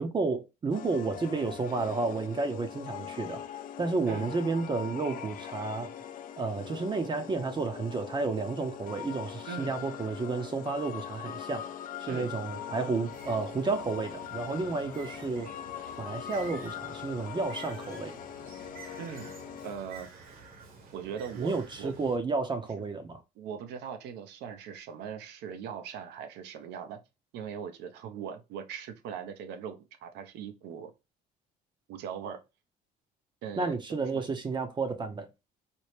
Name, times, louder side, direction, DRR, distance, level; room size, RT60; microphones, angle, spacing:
voice 1, 0.0-3.4 3.8-5.9 6.4-11.7 12.0-15.5 16.0-18.2 21.4-23.2 33.6-35.3, right 3 dB, 25° right, 0.6 m, -31 dB
sound 1, 0.7-19.7, left 9 dB, 55° left, 0.4 m, -42 dB
Bird, 13.1-22.2, right 4 dB, 60° right, 1.1 m, -50 dB
voice 2, 19.0-19.3 19.6-20.1 20.9-21.9 22.8-22.9 23.4-27.0 27.3-30.9 31.9-32.4 33.4-34.2, right 7 dB, 85° right, 0.7 m, -40 dB
4.3 x 2.1 x 3.2 m
cardioid pair, 110°, 17 cm